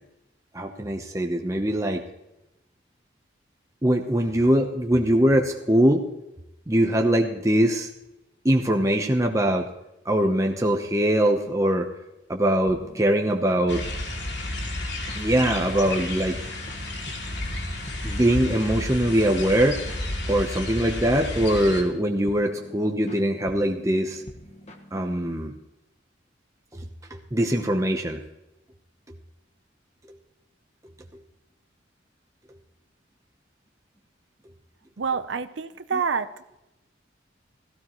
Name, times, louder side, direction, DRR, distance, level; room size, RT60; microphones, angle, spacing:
voice 1, 0.5-2.0 3.8-6.0 6.7-7.9 8.4-9.7 10.0-11.9 12.3-13.8 15.1-16.4 18.0-19.8 20.3-24.2 24.9-25.5 26.7-26.9 27.3-28.2, right 1 dB, 15° right, 2 dB, 0.9 m, -22 dB
sound 1, 12.7-25.5, equal, 35° left, 1.5 m, -44 dB
sound 2, 13.7-21.8, left 1 dB, 70° left, 2.6 m, -32 dB
voice 2, 35.0-36.3, right 5 dB, 80° right, 11 dB, 0.6 m, -27 dB
17.0 x 15.0 x 3.1 m, 0.91 s
head